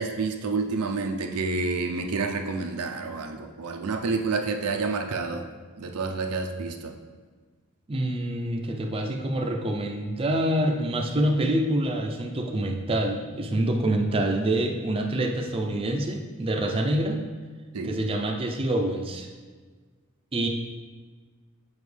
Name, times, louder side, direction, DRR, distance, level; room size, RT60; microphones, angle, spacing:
voice 1, 0.0-5.4 5.8-6.9 17.7-17.9, right 4 dB, 90° right, 4 dB, 0.6 m, -29 dB
voice 2, 7.9-17.2 17.8-19.3 20.3-20.5, right 1 dB, 25° right, 1 dB, 0.5 m, -26 dB
7.0 x 4.4 x 3.3 m, 1.5 s
head